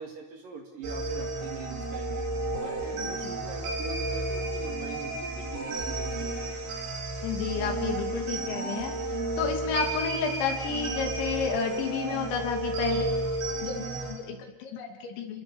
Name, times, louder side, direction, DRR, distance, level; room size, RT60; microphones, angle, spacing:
voice 1, 0.0-2.2 2.6-6.5, right 5 dB, 60° right, 2 dB, 3.4 m, -42 dB
sound 1, 0.8-14.1, right 2 dB, 85° right, 6.9 m, -32 dB
voice 2, 7.2-8.9 9.4-13.2 13.6-15.4, left 6 dB, 90° left, 3 dB, 5.0 m, -31 dB
28.5 x 21.5 x 7.2 m, 0.99 s
omnidirectional pair, 5.1 m